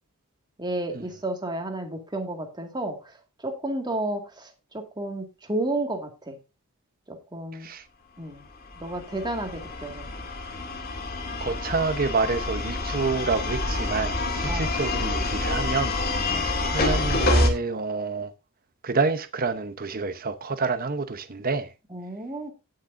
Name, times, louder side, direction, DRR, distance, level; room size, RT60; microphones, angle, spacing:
voice 1, 0.6-6.4 7.1-7.7 8.2-8.4 8.8-10.1 14.5-14.7 16.3-16.5 21.9-22.5, right 2 dB, 20° right, 2.0 m, -32 dB
voice 2, 7.5-7.9 11.4-18.3 18.8-21.7, right 4 dB, 45° right, 0.9 m, -28 dB
sound 1, 8.6-17.5, left 2 dB, 45° left, 2.4 m, -27 dB
18.0 x 6.6 x 2.6 m
head